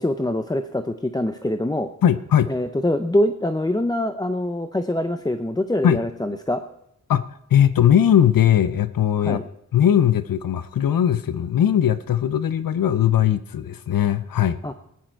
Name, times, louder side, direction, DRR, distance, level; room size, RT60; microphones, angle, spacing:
voice 1, 0.0-1.9 2.5-6.6 9.2-9.4 14.6-14.7, left 1 dB, 10° left, 8 dB, 0.5 m, -24 dB
voice 2, 2.0-2.5 5.8-6.0 7.1-7.3 7.5-9.4 9.7-14.6, left 10 dB, 80° left, 14 dB, 0.6 m, -19 dB
19.0 x 10.0 x 4.5 m, 0.79 s
wide cardioid pair, 145°, 34 cm